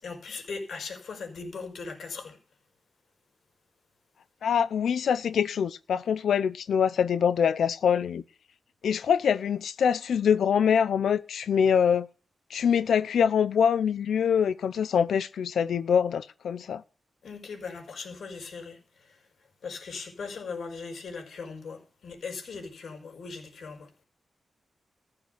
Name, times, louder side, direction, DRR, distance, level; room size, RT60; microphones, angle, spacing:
voice 1, 0.0-2.4 17.2-19.2 19.6-24.0, left 4 dB, 70° left, 5.5 m, -39 dB
voice 2, 4.4-8.2 8.8-12.1 12.5-16.8, left 7 dB, 90° left, 0.7 m, -24 dB
15.0 x 6.9 x 6.6 m
cardioid pair, 95°, 0 cm